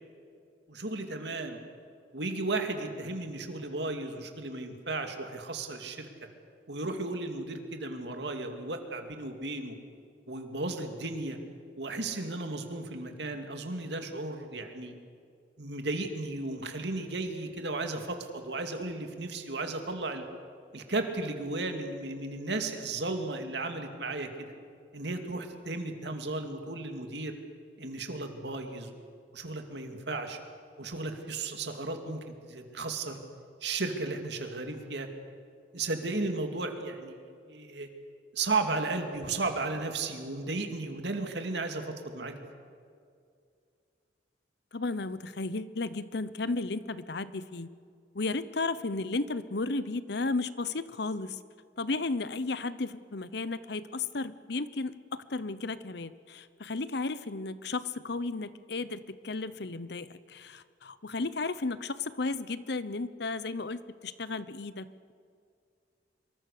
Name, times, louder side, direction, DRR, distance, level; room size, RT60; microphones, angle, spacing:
voice 1, 0.7-1.6 2.1-6.1 6.7-9.7 10.3-11.4 11.8-14.9 15.6-20.2 20.7-24.5 24.9-27.3 27.8-28.9 29.3-30.4 30.8-33.2 33.6-35.1 35.7-37.9 38.3-42.3, right 3 dB, 65° right, 5 dB, 2.4 m, -34 dB
voice 2, 44.7-47.7 48.1-51.4 51.8-65.1, left 3 dB, 60° left, 15 dB, 0.9 m, -34 dB
25.5 x 23.0 x 6.7 m, 2.3 s
head